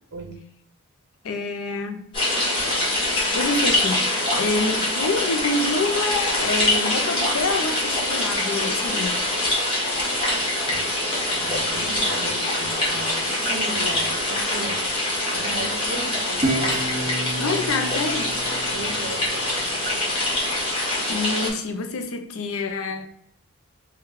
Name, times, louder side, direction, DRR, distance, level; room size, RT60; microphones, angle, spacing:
voice 1, 1.2-2.0 3.1-9.2 17.4-18.4 21.1-23.0, left 3 dB, 65° left, 0.5 m, -27 dB
sound 1, 2.1-21.5, left 1 dB, 25° left, 1.2 m, -24 dB
voice 2, 10.6-14.8 15.3-17.1 17.4-17.5 18.6-19.5, right 2 dB, 55° right, 0.8 m, -36 dB
Guitar, 16.4-19.6, right 1 dB, 20° right, 0.7 m, -30 dB
2.9 x 2.3 x 3.6 m
head